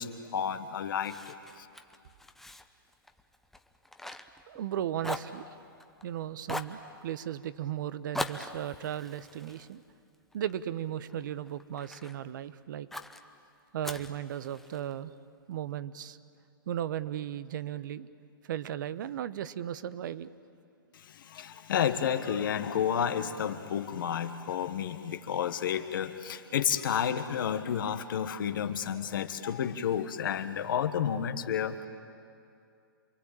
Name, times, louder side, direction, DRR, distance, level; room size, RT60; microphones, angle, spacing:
voice 1, 0.0-1.7 20.9-31.9, left 8 dB, 60° left, 9 dB, 1.5 m, -31 dB
Fire, 1.0-4.7 5.0-6.0 6.4-6.8 8.1-10.6 11.1-12.2 12.9-13.2 13.8-14.9, left 1 dB, ahead, 0.9 m, -41 dB
voice 2, 4.5-5.4 6.0-9.8 10.3-12.9 13.7-15.2 15.5-16.2 16.7-18.1 18.4-20.3, right 11 dB, 55° right, 15 dB, 1.0 m, -36 dB
27.5 x 22.5 x 8.8 m, 2.5 s
hypercardioid pair, 130°, 12 cm